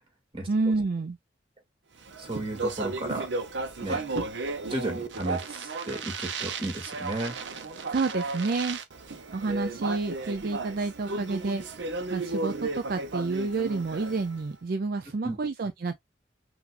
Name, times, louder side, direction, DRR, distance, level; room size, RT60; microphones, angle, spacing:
voice 1, 0.5-1.2 7.9-8.8 9.3-11.8 12.1-16.0, right 3 dB, 55° right, 0.4 m, -29 dB
Speech, 2.0-14.4, right 3 dB, 85° right, 0.8 m, -34 dB
voice 2, 2.2-3.3 3.8-4.0 4.7-7.4 15.2-15.4, right 1 dB, 30° right, 2.1 m, -33 dB
5.8 x 2.5 x 2.4 m
head